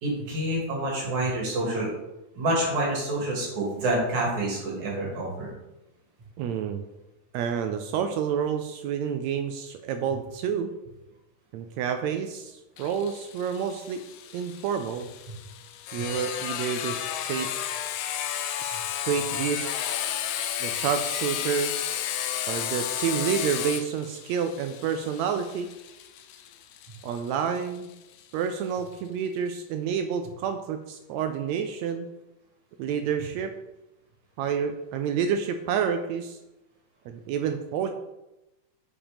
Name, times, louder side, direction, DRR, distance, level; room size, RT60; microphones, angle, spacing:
voice 1, 0.0-1.9 2.4-5.5, right 1 dB, 65° right, -3 dB, 3.6 m, -27 dB
voice 2, 6.4-6.8 7.3-10.7 11.5-14.0 14.3-15.1 15.9-17.5 18.6-19.7 20.6-21.7 22.5-25.7 27.0-27.9 28.3-32.1 32.8-33.5 34.4-36.4 37.1-37.9, right 7 dB, 80° right, 7 dB, 1.6 m, -29 dB
Sawing, 12.8-28.2, left 10 dB, 80° left, 1.7 m, -33 dB
7.1 x 5.4 x 5.0 m, 0.95 s
omnidirectional pair, 3.7 m